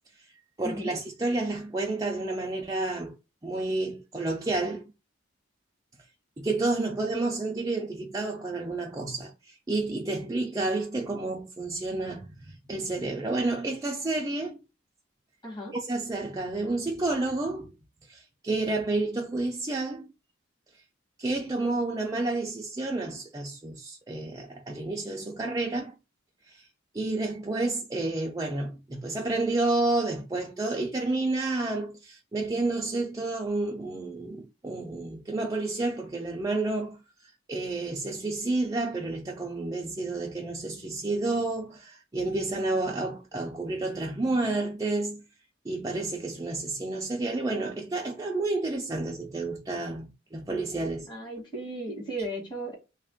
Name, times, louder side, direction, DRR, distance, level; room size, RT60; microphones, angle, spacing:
voice 1, 0.6-3.1 3.4-4.9 6.4-14.6 15.7-17.7 18.1-20.1 21.2-25.9 26.5-26.7 26.9-37.0 37.5-45.2 45.6-51.1, right 2 dB, 20° right, 0.4 m, -30 dB
voice 2, 15.4-15.7 51.1-52.8, right 1 dB, 25° left, 1.2 m, -35 dB
3.3 x 2.4 x 3.5 m
head